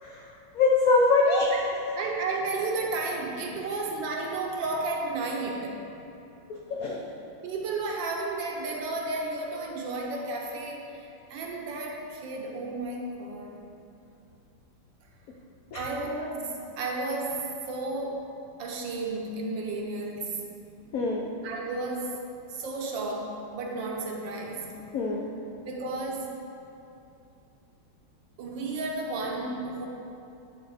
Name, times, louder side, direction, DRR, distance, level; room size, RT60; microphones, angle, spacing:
voice 1, 0.0-1.6 6.7-7.1 15.7-15.9 20.9-21.3 24.9-25.3, left 3 dB, 85° left, -2 dB, 0.7 m, -24 dB
voice 2, 2.0-5.9 7.4-13.6 15.7-18.3 18.6-20.6 20.8-20.9 21.4-22.2 22.5-24.9 25.7-26.4 28.4-29.9, right 3 dB, 70° right, 0 dB, 1.4 m, -33 dB
11.0 x 3.9 x 4.0 m, 2.7 s
omnidirectional pair, 2.3 m